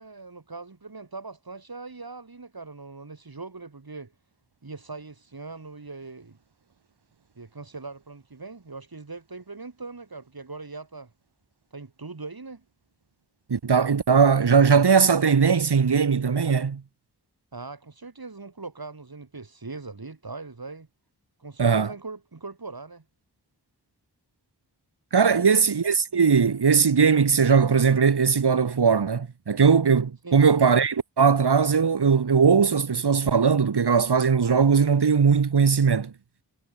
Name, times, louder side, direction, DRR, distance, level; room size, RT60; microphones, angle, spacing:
voice 1, 0.0-4.1 4.6-6.4 7.4-11.1 11.7-12.6 17.5-20.9 21.4-23.0 25.3-25.7 30.2-30.4, right 3 dB, 65° right, 7.3 m, -40 dB
voice 2, 13.5-16.8 21.6-21.9 25.1-36.1, right 6 dB, 90° right, 1.8 m, -20 dB
wide cardioid pair, 50°, 39 cm